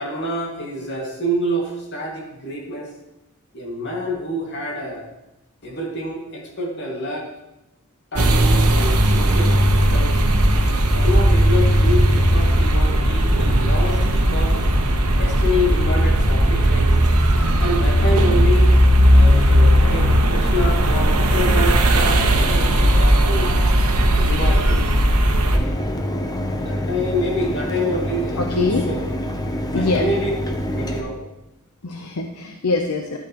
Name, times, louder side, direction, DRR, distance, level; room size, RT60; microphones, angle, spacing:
voice 1, 0.0-2.9 3.5-5.1 5.6-7.3 8.1-10.2 10.9-14.6 15.2-17.0 17.6-18.8 19.1-23.6 24.1-24.9 26.6-29.0 29.7-30.3 30.7-31.2, left 1 dB, 55° left, -1 dB, 2.1 m, -27 dB
sound 1, 8.2-25.6, equal, 80° right, 1.1 m, -16 dB
Mechanisms, 25.5-31.0, equal, 15° left, 0.7 m, -26 dB
voice 2, 28.4-28.8 29.5-30.1 31.8-33.2, left 3 dB, 85° left, 3 dB, 0.8 m, -24 dB
12.0 x 8.6 x 3.0 m, 0.93 s
head